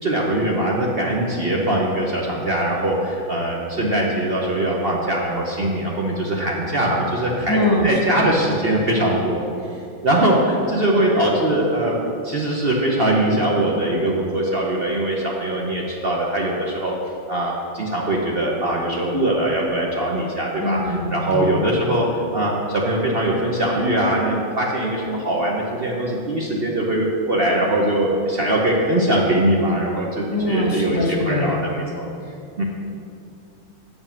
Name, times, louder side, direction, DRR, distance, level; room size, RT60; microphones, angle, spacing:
voice 1, 0.0-9.4 10.0-12.0 12.2-16.9 17.3-32.0 32.6-32.7, right 1 dB, 75° right, -2 dB, 0.5 m, -21 dB
voice 2, 7.5-8.4 20.6-21.5 30.3-31.5, left 1 dB, 20° left, -3 dB, 0.6 m, -22 dB
7.9 x 5.3 x 7.1 m, 2.6 s
omnidirectional pair, 2.3 m